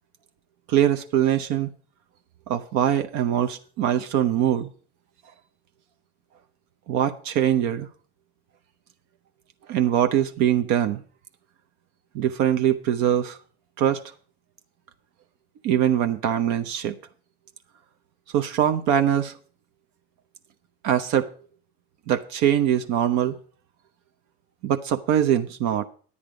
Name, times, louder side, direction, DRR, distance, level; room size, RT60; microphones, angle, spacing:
voice 1, 0.7-1.7 2.5-4.7 6.9-7.9 9.7-11.0 12.1-13.4 13.8-14.0 15.6-17.0 18.3-19.3 20.8-21.3 22.1-23.4 24.6-25.9, right 10 dB, 70° right, 0.8 m, -22 dB
9.8 x 8.7 x 5.0 m
supercardioid pair, 105°, 29 cm